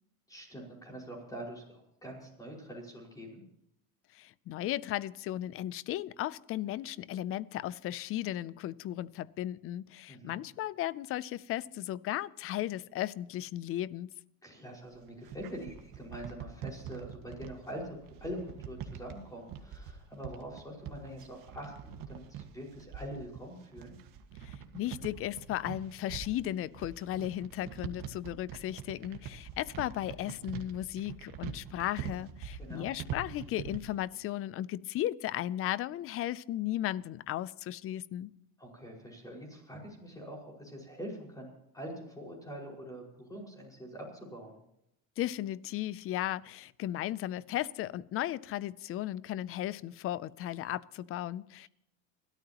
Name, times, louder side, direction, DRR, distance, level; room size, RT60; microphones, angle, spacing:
voice 1, 0.3-3.4 10.1-10.4 14.4-24.0 32.6-33.0 38.6-44.6, equal, 10° left, 5.4 m, -44 dB
voice 2, 4.1-14.1 24.4-38.3 45.2-51.7, left 13 dB, 35° left, 0.4 m, -35 dB
sound 1, 14.9-34.0, right 8 dB, 50° right, 1.8 m, -44 dB
30.0 x 13.0 x 3.0 m
cardioid pair, 150°, 42 cm